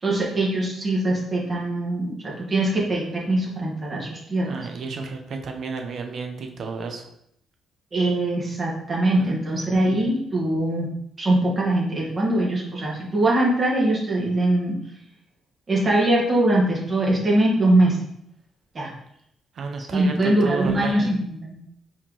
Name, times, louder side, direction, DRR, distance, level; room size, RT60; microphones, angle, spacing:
voice 1, 0.0-4.6 7.9-10.9 11.2-14.8 15.7-18.0 18.7-18.9 19.9-21.6, right 1 dB, 35° right, -4 dB, 1.5 m, -22 dB
voice 2, 4.4-7.1 9.1-9.7 19.5-21.1, right 4 dB, 60° right, 4 dB, 0.8 m, -32 dB
4.6 x 3.7 x 3.1 m, 0.74 s
cardioid pair, 90°, 0 cm